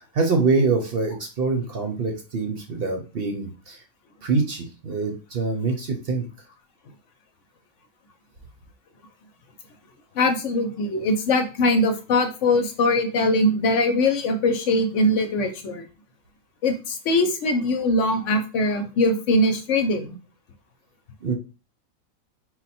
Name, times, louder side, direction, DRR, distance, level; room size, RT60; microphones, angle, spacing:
voice 1, 0.0-3.8 4.2-6.2 21.2-21.3, right 4 dB, 50° right, 3 dB, 0.9 m, -25 dB
voice 2, 10.1-15.9 16.6-20.1, left 1 dB, 65° left, 6 dB, 1.0 m, -22 dB
4.2 x 2.2 x 4.2 m, 0.32 s
omnidirectional pair, 1.4 m